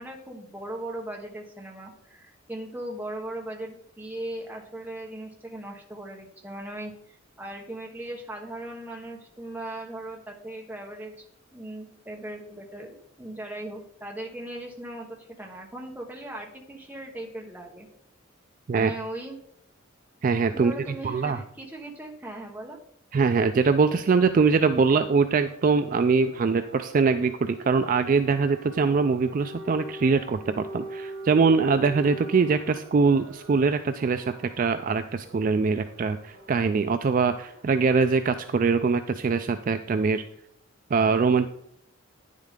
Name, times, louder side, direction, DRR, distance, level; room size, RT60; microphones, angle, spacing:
voice 1, 0.0-11.1 11.5-17.9 18.7-19.4 20.5-22.8, right 1 dB, 10° right, -1 dB, 1.2 m, -38 dB
voice 2, 20.2-20.7 21.0-21.4 23.1-40.2 40.9-41.5, right 4 dB, 40° right, 9 dB, 0.3 m, -23 dB
sound 1, 23.5-38.2, right 2 dB, 80° right, 2.1 m, -43 dB
10.0 x 7.4 x 3.7 m, 0.71 s
head